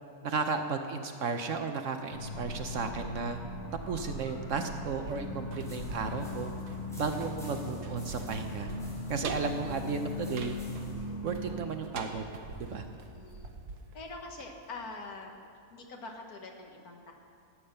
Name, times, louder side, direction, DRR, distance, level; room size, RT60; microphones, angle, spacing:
voice 1, 0.2-3.4 3.9-6.5 6.9-8.7 9.1-10.6 11.2-12.2 12.6-12.8, right 5 dB, 60° right, 6 dB, 1.0 m, -34 dB
sound 1, 2.1-11.6, left 2 dB, 50° left, 1.5 m, -39 dB
sound 2, 4.3-15.1 15.4-15.5, right 4 dB, 80° right, 1.5 m, -45 dB
sound 3, 5.6-11.1, equal, ahead, 3.5 m, -56 dB
voice 2, 7.0-7.5 13.1-13.5 13.9-15.4 15.7-17.1, left 3 dB, 70° left, 2 dB, 1.8 m, -45 dB
14.5 x 8.7 x 6.6 m, 2.4 s
omnidirectional pair, 1.7 m